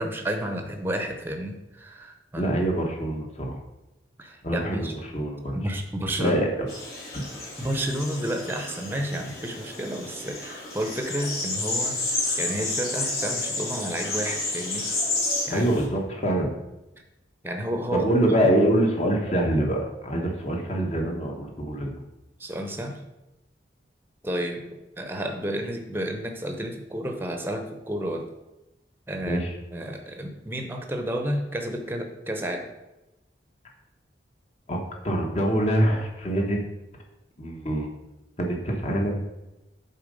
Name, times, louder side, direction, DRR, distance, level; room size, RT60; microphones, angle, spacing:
voice 1, 0.0-2.5 4.2-5.0 5.5-6.4 7.6-14.9 15.5-15.7 17.4-18.1 18.5-18.6 22.4-23.0 24.2-28.3 29.1-29.4 29.7-32.7, right 1 dB, 10° right, 4 dB, 0.8 m, -31 dB
voice 2, 2.4-3.5 4.4-5.6 6.2-6.5 7.1-7.2 15.5-16.5 17.9-21.9 29.2-29.5 34.7-34.8 35.0-36.6 37.4-37.9 38.4-39.2, right 1 dB, 35° left, 1 dB, 1.3 m, -25 dB
sound 1, 6.7-15.8, left 2 dB, 55° left, 2.8 m, -31 dB
7.2 x 4.1 x 5.2 m, 0.96 s
head